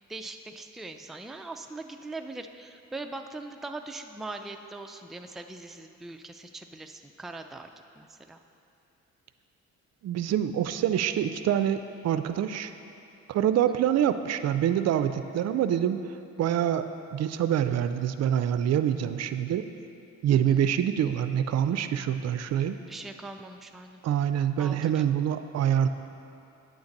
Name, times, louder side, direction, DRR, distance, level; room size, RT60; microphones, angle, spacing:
voice 1, 0.0-8.4 20.3-20.6 22.8-24.0 24.6-25.1, right 2 dB, ahead, 5 dB, 0.4 m, -41 dB
voice 2, 10.0-12.7 13.3-16.0 16.4-19.7 20.2-22.8 24.0-25.9, right 10 dB, 60° right, 10 dB, 0.4 m, -26 dB
9.5 x 3.9 x 7.2 m, 2.8 s
cardioid pair, 90°, 30 cm